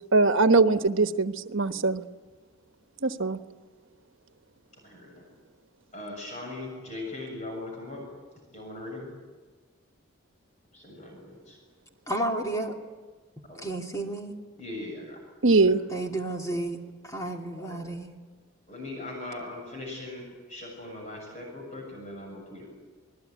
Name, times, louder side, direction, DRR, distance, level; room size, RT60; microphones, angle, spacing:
voice 1, 0.1-2.0 3.0-3.4 15.4-15.8, right 3 dB, 75° right, 9 dB, 1.2 m, -21 dB
voice 2, 4.8-5.3 5.9-8.0 8.5-9.1 10.7-11.6 13.5-13.7 14.6-15.2 15.6-15.7 17.6-17.8 18.7-22.7, left 2 dB, 35° left, 0 dB, 7.1 m, -40 dB
voice 3, 12.1-12.7 13.6-14.4 15.9-18.1, right 1 dB, 15° left, 1 dB, 2.7 m, -32 dB
27.0 x 20.5 x 9.4 m, 1.4 s
head